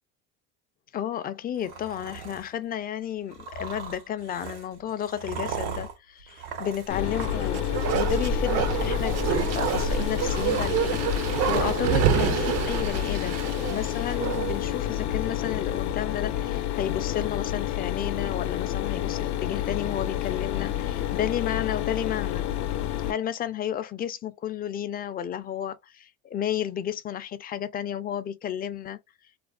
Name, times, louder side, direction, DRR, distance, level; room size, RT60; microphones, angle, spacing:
voice 1, 0.9-22.5 23.1-29.0, left 10 dB, 30° left, 0.4 m, -32 dB
sound 1, 1.6-2.5 3.3-7.6 7.8-8.3 8.7-11.7, right 5 dB, 90° right, 1.0 m, -39 dB
Mechanisms, 6.9-23.1, left 12 dB, 70° left, 0.6 m, -29 dB
Bark, 7.1-14.7 15.0-15.1, right 9 dB, 60° right, 0.5 m, -28 dB
2.5 x 2.4 x 2.2 m
supercardioid pair, 100°, 29 cm